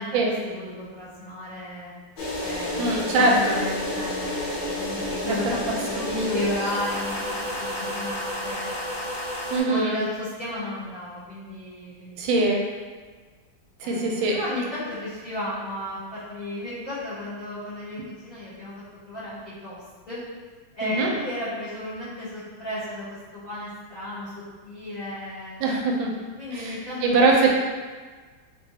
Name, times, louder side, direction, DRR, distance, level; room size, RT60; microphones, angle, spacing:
voice 1, 0.0-1.9 2.4-8.7 9.7-12.2 13.8-20.2 20.7-23.1 23.3-24.3 24.6-25.8 26.4-27.5, left 1 dB, 40° left, -13 dB, 0.9 m, -34 dB
sound 1, 2.2-9.6, left 1 dB, 80° left, 1.5 m, -30 dB
voice 2, 2.8-3.5 6.0-6.3 9.5-10.0 12.2-12.6 13.8-14.4 20.8-21.1 25.6-26.1 27.0-27.5, right 2 dB, 85° right, -1 dB, 1.3 m, -22 dB
3.5 x 2.2 x 2.7 m, 1.4 s
omnidirectional pair, 2.0 m